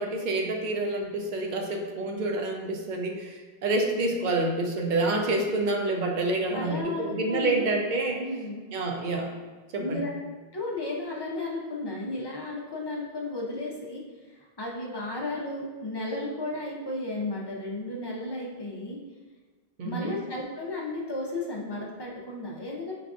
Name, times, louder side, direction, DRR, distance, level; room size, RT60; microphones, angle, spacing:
voice 1, 0.0-8.2 8.7-9.3 9.7-10.0 19.8-20.2, right 2 dB, 60° right, 1 dB, 0.6 m, -28 dB
voice 2, 6.5-7.7 8.2-8.7 9.8-10.1 10.5-14.0 14.3-19.0 19.8-22.9, left 2 dB, 40° left, -3 dB, 0.4 m, -34 dB
4.9 x 2.4 x 2.3 m, 1.3 s
omnidirectional pair, 1.0 m